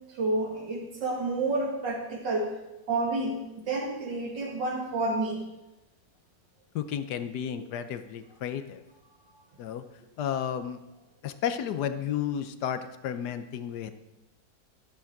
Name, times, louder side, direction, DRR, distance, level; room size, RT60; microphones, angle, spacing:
voice 1, 0.1-2.5 2.9-3.4 3.6-5.4 7.5-7.6, right 2 dB, 85° right, 0 dB, 2.9 m, -29 dB
voice 2, 6.7-8.8 9.6-9.8 10.2-10.8 11.2-13.9, left 9 dB, 70° left, 10 dB, 1.2 m, -32 dB
11.5 x 8.7 x 5.9 m, 0.98 s
omnidirectional pair, 1.9 m